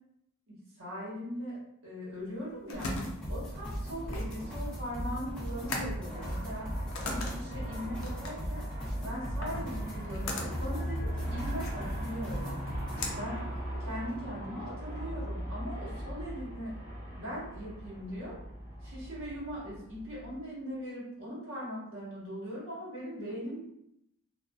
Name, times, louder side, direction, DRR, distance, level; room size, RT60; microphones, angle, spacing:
voice 1, 0.5-2.9 3.3-6.7 7.0-8.6 9.0-12.6 13.1-13.4 13.8-16.7 17.1-18.4 18.8-23.6, equal, 60° right, -7 dB, 1.2 m, -40 dB
sound 1, 2.2-14.2, left 2 dB, 65° left, 0.5 m, -41 dB
sound 2, 2.7-13.0, equal, 5° left, 0.7 m, -39 dB
Aircraft, 3.2-20.5, equal, 20° right, 0.9 m, -40 dB
2.5 x 2.4 x 2.3 m, 0.79 s
head